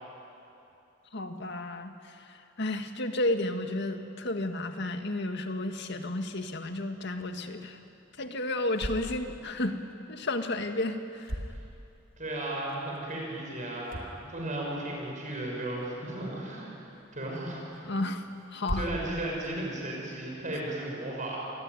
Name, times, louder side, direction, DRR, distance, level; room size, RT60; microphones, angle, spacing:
voice 1, 1.1-7.8 8.2-9.8 10.1-11.4 17.8-18.2 18.5-18.9, left 2 dB, 60° left, 6 dB, 1.9 m, -32 dB
sound 1, 7.0-20.6, equal, 70° right, 3.5 m, -44 dB
voice 2, 12.2-17.9 18.7-21.4, right 1 dB, 40° right, -2 dB, 6.4 m, -35 dB
28.0 x 21.0 x 9.8 m, 2.8 s
head